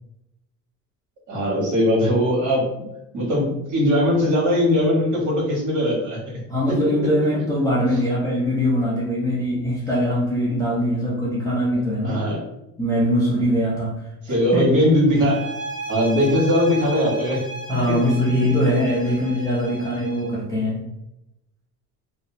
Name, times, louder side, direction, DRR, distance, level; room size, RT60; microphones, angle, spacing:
voice 1, 1.3-2.7 3.1-6.4 6.7-6.8 12.0-12.4 14.2-15.4 15.9-17.4 17.9-18.0, equal, 55° right, -4 dB, 1.3 m, -20 dB
voice 2, 6.5-12.3 12.8-14.0 14.5-14.7 17.7-20.9, equal, 10° left, -7 dB, 0.4 m, -22 dB
sound 1, 15.1-20.4, right 2 dB, 20° right, 1.1 m, -34 dB
2.6 x 2.0 x 2.6 m, 0.88 s
cardioid pair, 125°, 37 cm